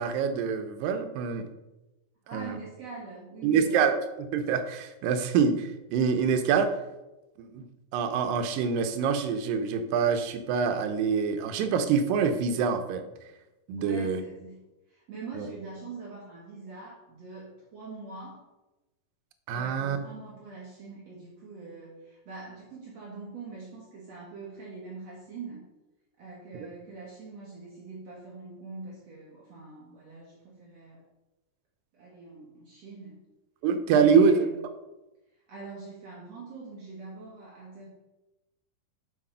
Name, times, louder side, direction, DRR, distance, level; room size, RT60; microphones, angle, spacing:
voice 1, 0.0-1.5 2.3-2.5 3.4-6.8 7.4-7.6 7.9-13.0 13.7-14.2 15.3-15.5 19.5-20.0 33.6-34.3, right 6 dB, 85° right, 8 dB, 2.5 m, -25 dB
voice 2, 2.2-3.9 13.8-18.4 19.5-25.7 26.2-31.0 31.9-33.2 33.9-34.6 35.5-37.9, right 3 dB, 55° right, -4 dB, 2.3 m, -43 dB
7.4 x 6.0 x 5.5 m, 1.0 s
omnidirectional pair, 3.9 m